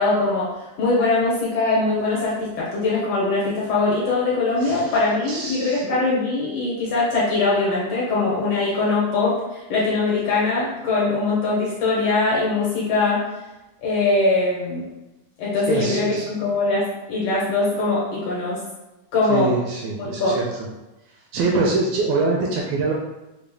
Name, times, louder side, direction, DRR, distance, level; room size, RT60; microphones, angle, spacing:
voice 1, 0.0-13.2 13.8-14.8 15.4-18.6 19.1-19.5 20.0-20.3, left 3 dB, 70° left, -6 dB, 1.6 m, -22 dB
voice 2, 4.6-4.9 5.3-6.0 15.7-16.3 19.3-20.4 21.3-22.9, right 3 dB, 80° right, -1 dB, 1.7 m, -24 dB
4.9 x 2.0 x 3.3 m, 1.0 s
omnidirectional pair, 3.5 m